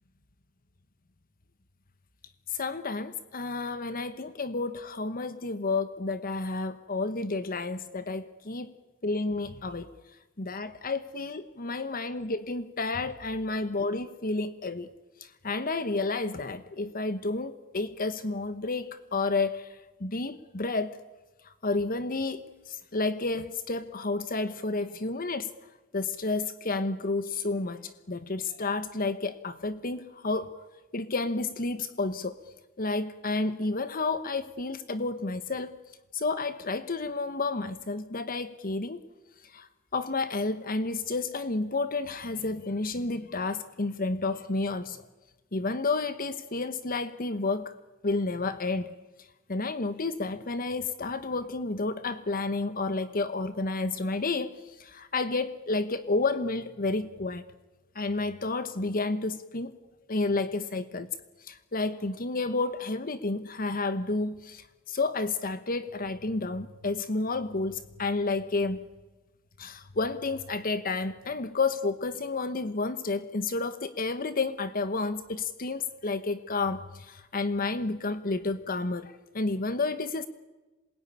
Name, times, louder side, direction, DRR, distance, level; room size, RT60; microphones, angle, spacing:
voice 1, 2.5-8.7 9.0-9.9 10.4-14.9 15.2-21.0 21.4-25.5 25.9-30.5 30.9-32.4 32.8-35.7 36.1-39.0 39.4-45.1 45.5-47.7 48.0-48.9 49.5-57.5 57.9-59.7 60.1-61.1 61.4-68.9 69.6-80.3, left 3 dB, 45° left, 12 dB, 1.1 m, -31 dB
27.0 x 21.5 x 10.0 m, 1.2 s
head